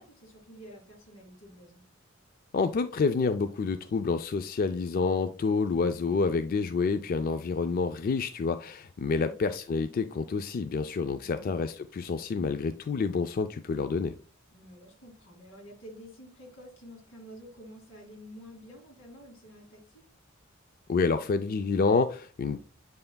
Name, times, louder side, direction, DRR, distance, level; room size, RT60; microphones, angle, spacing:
voice 1, 0.0-1.9 9.1-9.4 11.2-11.6 14.5-20.0, equal, 90° left, 2.4 m, -49 dB
voice 2, 2.5-14.1 20.9-22.6, left 4 dB, 45° left, 0.4 m, -28 dB
7.8 x 5.6 x 2.2 m
head